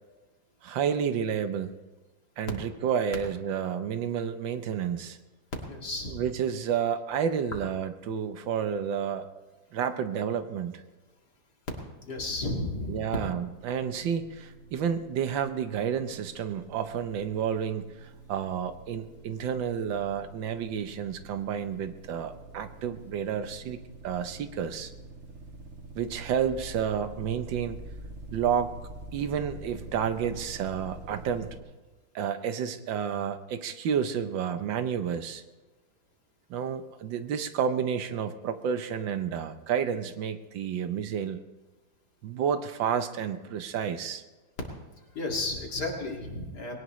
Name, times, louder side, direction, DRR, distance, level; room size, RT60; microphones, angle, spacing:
voice 1, 0.6-1.8 2.4-5.2 6.1-9.4 9.7-10.8 12.9-24.9 25.9-27.8 28.3-28.7 29.1-31.6 32.1-35.4 36.5-41.4 42.2-44.2, right 8 dB, 75° right, 10 dB, 1.5 m, -30 dB
voice 2, 5.7-6.2 12.0-13.0 45.1-46.8, left 2 dB, 55° left, 0 dB, 2.8 m, -33 dB
sound 1, 13.0-31.6, right 2 dB, 45° right, 1.6 m, -46 dB
21.0 x 18.0 x 3.1 m, 1.2 s
omnidirectional pair, 2.1 m